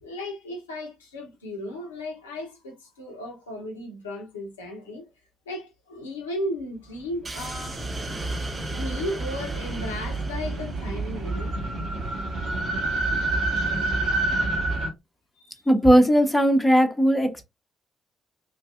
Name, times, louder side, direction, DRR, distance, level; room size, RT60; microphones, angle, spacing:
voice 1, 0.0-5.1 5.5-8.2 8.7-11.6 15.4-15.6, left 1 dB, 85° left, 0.6 m, -35 dB
sound 1, 7.2-11.6, right 2 dB, 35° right, 0.7 m, -36 dB
sound 2, 7.4-14.9, right 2 dB, 60° right, 0.9 m, -28 dB
voice 2, 15.7-17.4, equal, 10° left, 0.7 m, -18 dB
3.1 x 2.5 x 2.4 m
figure-of-eight pair, 40°, 0 cm